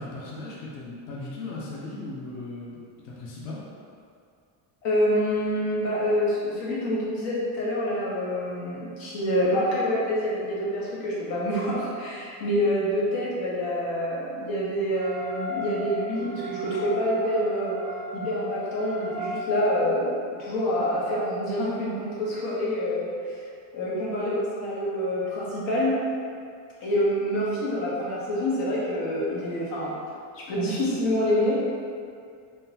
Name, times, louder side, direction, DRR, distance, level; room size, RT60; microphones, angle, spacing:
voice 1, 0.0-3.6, left 2 dB, 35° left, -5 dB, 0.4 m, -37 dB
voice 2, 4.8-17.8 18.1-23.4 23.7-25.9 26.8-29.9 30.3-31.6, equal, 80° left, -7 dB, 1.2 m, -26 dB
sound 1, 14.9-19.4, equal, 10° right, 0.6 m, -35 dB
3.6 x 2.2 x 2.7 m, 2.3 s
cardioid pair, 155°, 50 cm